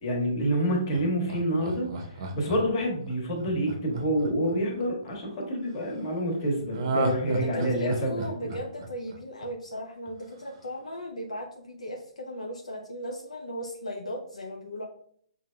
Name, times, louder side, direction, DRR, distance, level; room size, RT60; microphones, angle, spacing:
voice 1, 0.0-1.9 2.3-8.2, equal, 45° left, 0 dB, 1.5 m, -27 dB
Laughter, 0.9-5.1 6.7-9.7 10.1-10.2, right 2 dB, 45° right, 0.7 m, -33 dB
voice 2, 7.3-14.9, equal, 85° left, 2 dB, 0.6 m, -37 dB
5.9 x 2.6 x 2.2 m, 0.62 s
figure-of-eight pair, 130°, 4 cm